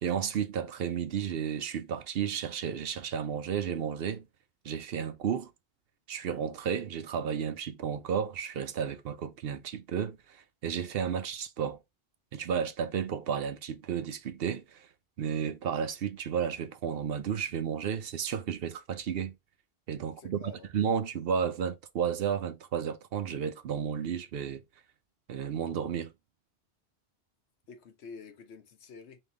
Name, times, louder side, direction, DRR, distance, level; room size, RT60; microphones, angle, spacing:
voice 1, 0.0-4.3 4.6-5.5 6.1-11.8 12.3-14.9 15.2-19.3 19.9-24.6 25.3-26.1, right 7 dB, 65° right, 0.8 m, -32 dB
voice 2, 20.2-20.7 27.7-29.2, left 4 dB, 75° left, 1.1 m, -48 dB
3.5 x 3.1 x 3.7 m
omnidirectional pair, 1.1 m